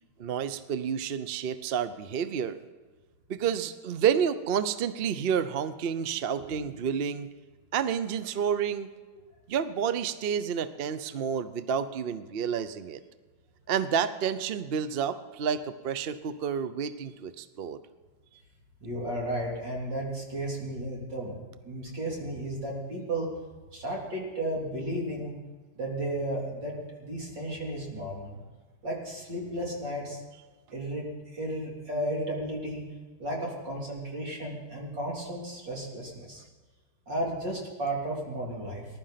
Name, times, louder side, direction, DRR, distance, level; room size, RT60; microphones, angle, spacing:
voice 1, 0.2-2.6 3.3-7.3 7.7-8.9 9.5-13.0 13.7-17.8, right 7 dB, 55° right, 12 dB, 0.6 m, -29 dB
voice 2, 18.8-23.3 23.7-25.3 25.8-28.4 28.8-30.2 30.7-31.0 31.3-32.8 33.2-36.4 37.1-38.8, right 1 dB, 80° right, -2 dB, 4.0 m, -33 dB
20.0 x 11.5 x 5.8 m, 1.3 s
omnidirectional pair, 1.9 m